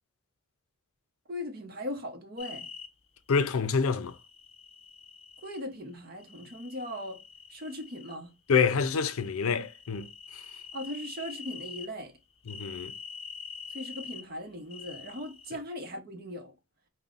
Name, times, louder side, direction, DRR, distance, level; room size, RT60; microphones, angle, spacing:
voice 1, 1.3-2.7 5.4-7.2 7.5-8.3 10.7-12.1 13.7-16.5, left 1 dB, 45° right, 0.8 m, -39 dB
sound 1, 2.4-2.9 4.0-5.6 6.2-8.2 8.5-11.9 12.4-14.2 14.7-15.5, left 6 dB, 30° left, 0.6 m, -46 dB
voice 2, 3.3-4.2 8.5-10.4 12.5-12.9, left 5 dB, 85° left, 0.5 m, -27 dB
5.4 x 2.2 x 2.4 m
head